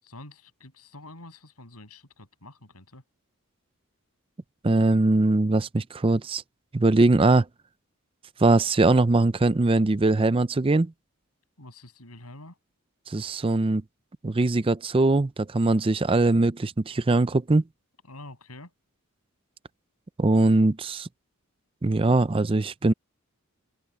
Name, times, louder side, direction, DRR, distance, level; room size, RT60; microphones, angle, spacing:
voice 1, 0.0-3.0 11.6-12.6 18.0-18.7, left 2 dB, 90° left, 7.2 m, -46 dB
voice 2, 4.6-6.4 6.7-7.5 8.4-10.9 13.1-13.8 14.2-17.6 20.2-21.1 21.8-22.9, right 2 dB, 25° right, 0.5 m, -21 dB
open air
head